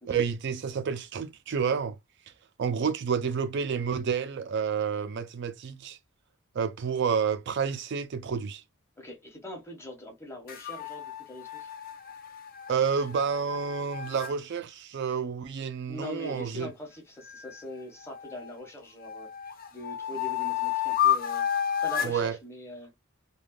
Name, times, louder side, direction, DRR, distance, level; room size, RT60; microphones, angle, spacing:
voice 1, 0.1-2.0 2.6-6.0 6.5-8.6 12.7-16.7 22.0-22.4, right 6 dB, 55° right, 0.4 m, -29 dB
voice 2, 9.0-11.7 15.9-21.5 21.8-22.9, left 1 dB, 15° left, 1.2 m, -42 dB
sound 1, 10.5-14.3 17.3-18.5 19.0-22.2, left 10 dB, 45° left, 0.5 m, -31 dB
3.3 x 2.3 x 2.3 m
head